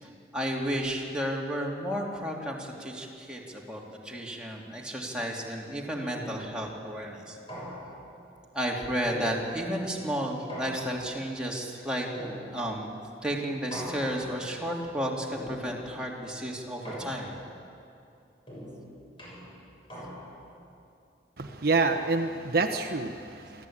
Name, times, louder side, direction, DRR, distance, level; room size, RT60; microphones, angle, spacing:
voice 1, 0.0-7.4 8.5-12.1 12.5-12.9 13.2-17.3, equal, 5° right, -3 dB, 2.8 m, -32 dB
sound 1, 6.1-6.7 7.5-8.2 9.0-9.8 10.5-11.3 12.1-12.9 13.7-14.4 15.3-16.0 16.8-17.6 18.5-20.5, equal, 30° left, 7.2 m, -41 dB
voice 2, 21.4-23.7, right 3 dB, 60° right, 5 dB, 1.0 m, -27 dB
24.5 x 15.0 x 8.8 m, 2.5 s
head